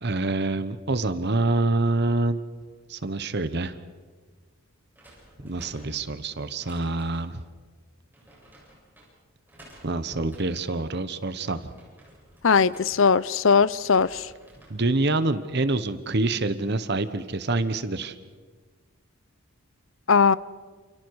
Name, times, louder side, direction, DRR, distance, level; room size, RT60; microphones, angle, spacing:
voice 1, 0.0-2.4 2.9-3.8 5.4-7.4 9.8-11.7 14.7-18.2, right 2 dB, 50° right, 11 dB, 1.1 m, -26 dB
sound 1, 4.9-7.4 8.1-9.1 9.5-10.7 11.2-13.4 13.7-14.8 15.3-15.7, right 1 dB, 10° right, 7.5 m, -51 dB
voice 2, 12.4-14.3 20.1-20.3, left 5 dB, 60° left, 19 dB, 0.6 m, -19 dB
30.0 x 28.5 x 4.8 m, 1.5 s
head